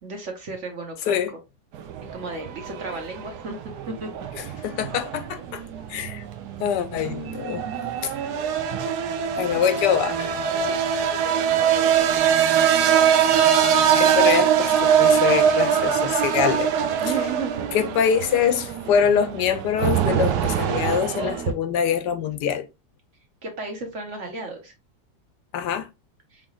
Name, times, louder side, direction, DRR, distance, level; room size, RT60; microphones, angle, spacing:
voice 1, 0.0-1.2 2.1-3.6 3.9-4.3 10.6-10.7 17.0-17.7 23.4-24.7 26.3-26.4, right 3 dB, 50° right, 1.2 m, -33 dB
sound 1, 1.7-21.5, right 8 dB, 75° right, 1.2 m, -23 dB
voice 2, 4.4-5.6 5.9-6.2 6.6-7.7 8.0-8.1 9.4-10.3 14.0-16.7 17.7-22.7 25.5-25.9, left 8 dB, 80° left, 1.2 m, -24 dB
4.8 x 3.8 x 2.4 m
omnidirectional pair, 1.8 m